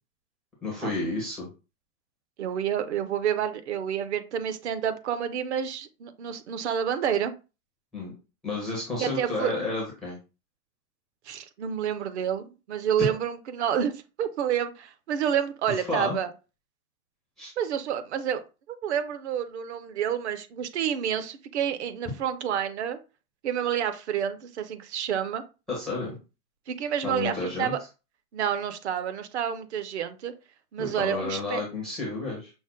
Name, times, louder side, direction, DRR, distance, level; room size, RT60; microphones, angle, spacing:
voice 1, 0.6-1.5 7.9-8.1 8.4-10.2 15.7-16.2 17.4-17.5 25.7-26.2 27.0-27.7 30.8-32.5, left 2 dB, ahead, -6 dB, 0.4 m, -31 dB
voice 2, 2.4-7.3 9.0-9.6 11.3-16.3 17.6-18.4 18.7-23.0 23.4-25.4 26.7-27.8 28.3-30.3 30.7-31.6, right 9 dB, 45° right, 10 dB, 0.7 m, -29 dB
6.0 x 2.0 x 3.7 m, 0.31 s
hypercardioid pair, 135°, 47 cm